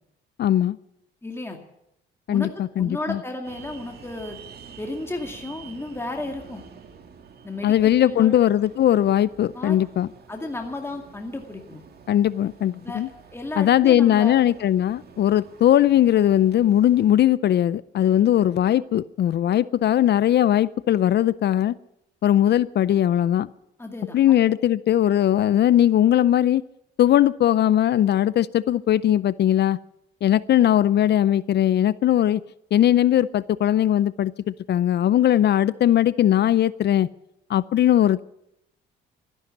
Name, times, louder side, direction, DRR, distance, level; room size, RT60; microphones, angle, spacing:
voice 1, 0.4-0.8 2.3-3.2 7.6-10.1 12.1-13.1 13.6-21.7 22.2-23.5 24.1-26.6 27.0-29.8 30.2-32.4 32.7-37.1 37.5-38.3, left 11 dB, 60° left, 0.5 m, -19 dB
voice 2, 1.2-1.6 2.3-4.4 4.8-6.6 7.4-8.4 9.5-9.8 10.3-11.8 12.8-13.0 13.3-14.5 23.8-24.4, left 2 dB, 10° left, 2.2 m, -33 dB
sound 1, 3.4-17.2, right 6 dB, 50° right, 2.2 m, -47 dB
13.5 x 11.5 x 9.1 m
cardioid pair, 90°, 20 cm